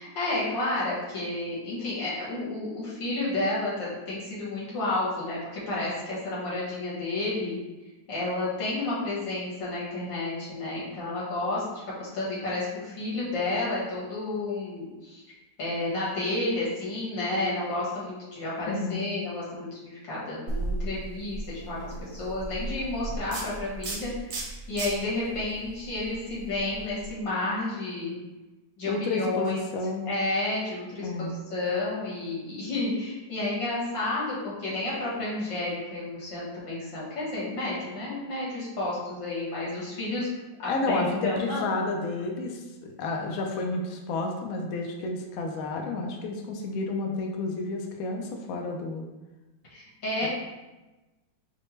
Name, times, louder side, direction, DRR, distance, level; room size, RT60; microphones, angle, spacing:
voice 1, 0.0-7.6 8.1-15.2 15.6-24.3 24.7-28.2 28.8-29.6 30.1-40.3 40.6-41.7 49.7-50.3, left 2 dB, 90° left, -7 dB, 2.4 m, -31 dB
voice 2, 18.7-19.1 28.9-30.1 31.0-31.4 40.7-49.1 50.2-50.3, left 3 dB, 65° left, 2 dB, 0.9 m, -31 dB
sound 1, 20.5-27.1, right 2 dB, 85° right, 1.6 m, -36 dB
6.5 x 2.2 x 3.1 m, 1.1 s
omnidirectional pair, 2.0 m